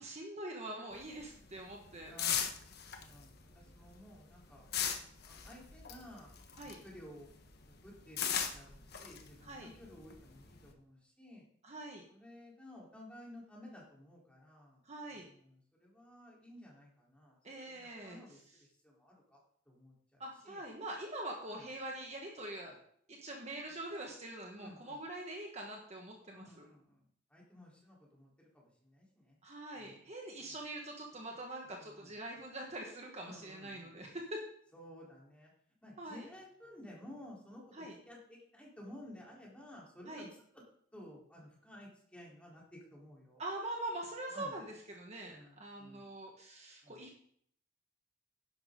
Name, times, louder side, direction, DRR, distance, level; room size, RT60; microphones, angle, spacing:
voice 1, 0.0-2.1 6.6-6.8 9.4-9.7 11.6-12.0 14.8-15.3 17.4-18.6 20.2-22.8 23.1-26.7 29.4-34.4 36.0-36.3 37.7-37.9 40.0-40.3 43.4-47.2, right 1 dB, 35° right, 0 dB, 1.6 m, -44 dB
sound 1, 0.9-7.0 7.3-10.7, left 8 dB, 55° left, 1.3 m, -38 dB
voice 2, 2.1-2.4 3.0-4.7 5.3-7.3 7.8-11.4 12.1-14.8 15.2-18.4 18.8-19.4 19.7-20.6 21.5-21.6 24.6-25.0 26.3-27.0 27.3-28.3 28.5-29.4 29.8-30.0 30.4-30.6 31.7-32.1 33.2-33.9 34.7-35.5 35.8-37.7 38.1-40.4 40.9-43.4 44.3-44.5 45.3-46.1 46.8-47.0, left 1 dB, 5° left, -4 dB, 3.9 m, -54 dB
12.0 x 11.0 x 3.9 m, 0.64 s
head